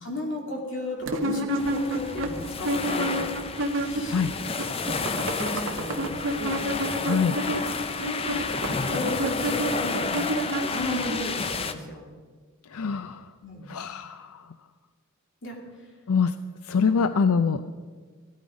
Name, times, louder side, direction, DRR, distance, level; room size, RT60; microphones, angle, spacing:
voice 1, 0.0-3.3 3.9-4.3 4.8-5.0 5.3-6.6 7.5-7.6 8.0-10.2 10.6-12.0 13.4-13.7 15.4-15.6 16.8-17.0, left 1 dB, 55° left, 0 dB, 2.7 m, -34 dB
sound 1, 1.1-4.2 4.5-11.2, right 1 dB, 60° right, 1.2 m, -29 dB
sound 2, 1.6-11.7, left 4 dB, 25° left, 0.5 m, -31 dB
voice 2, 7.0-7.4 12.7-13.3 13.7-14.5 16.1-16.3 16.6-17.6, left 5 dB, 90° left, 10 dB, 0.5 m, -24 dB
15.0 x 13.0 x 5.1 m, 1.5 s
head